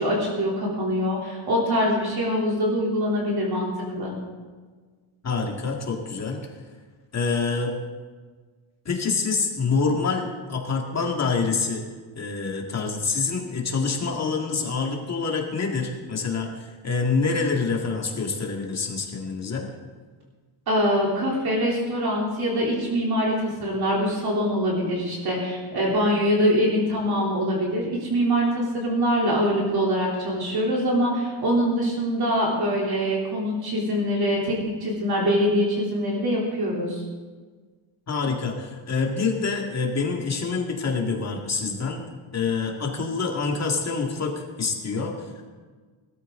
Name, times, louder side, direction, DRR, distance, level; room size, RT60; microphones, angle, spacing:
voice 1, 0.0-4.1 20.7-34.5 34.8-37.0, equal, 45° right, -3 dB, 3.4 m, -24 dB
voice 2, 5.2-6.4 7.1-7.8 8.9-11.9 12.2-19.7 38.1-42.0 42.3-45.5, left 4 dB, 30° left, 0 dB, 2.1 m, -26 dB
19.0 x 13.5 x 3.8 m, 1.4 s
cardioid pair, 165°, 50 cm